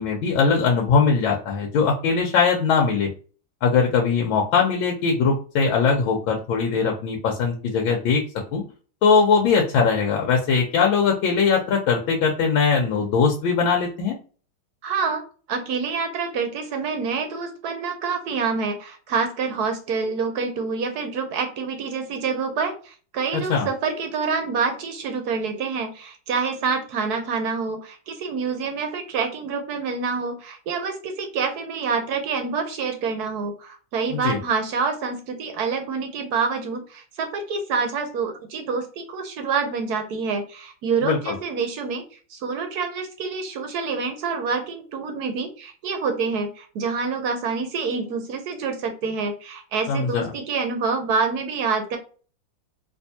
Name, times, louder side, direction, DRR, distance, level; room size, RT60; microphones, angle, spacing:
voice 1, 0.0-3.1 3.6-8.2 8.5-8.6 9.0-14.2 23.5-23.7 34.2-34.4 41.0-41.4 49.9-50.3, left 5 dB, 90° left, 0 dB, 1.5 m, -20 dB
voice 2, 14.8-15.2 15.5-52.0, right 5 dB, 70° right, 5 dB, 1.0 m, -27 dB
3.4 x 2.9 x 2.7 m, 0.39 s
omnidirectional pair, 2.1 m